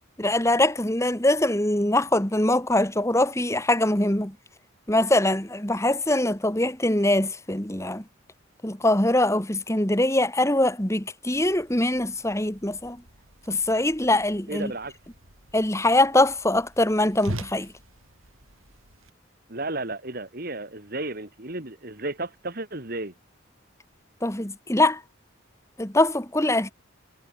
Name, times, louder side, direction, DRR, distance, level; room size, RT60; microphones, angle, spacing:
voice 1, 0.2-4.3 4.9-8.0 8.6-13.0 13.5-14.7 15.5-17.7 24.2-25.0 25.8-26.7, left 1 dB, 15° left, 2.2 m, -23 dB
Whoosh swoosh swish, 11.3-19.1, right 1 dB, 80° right, 7.9 m, -43 dB
voice 2, 14.5-14.9 19.5-23.1, right 2 dB, 45° right, 2.7 m, -33 dB
head